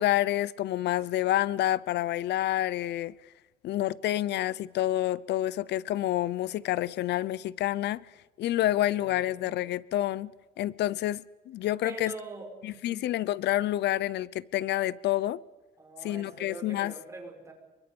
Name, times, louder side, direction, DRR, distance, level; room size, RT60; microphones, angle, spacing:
voice 1, 0.0-3.1 3.6-8.1 8.4-10.3 10.6-12.1 12.6-15.4 16.0-16.9, left 14 dB, 85° left, 0.6 m, -28 dB
voice 2, 8.5-9.5 11.8-13.0 15.8-17.5, right 3 dB, 15° right, 5.5 m, -44 dB
28.0 x 24.0 x 5.4 m
cardioid pair, 170°, 17 cm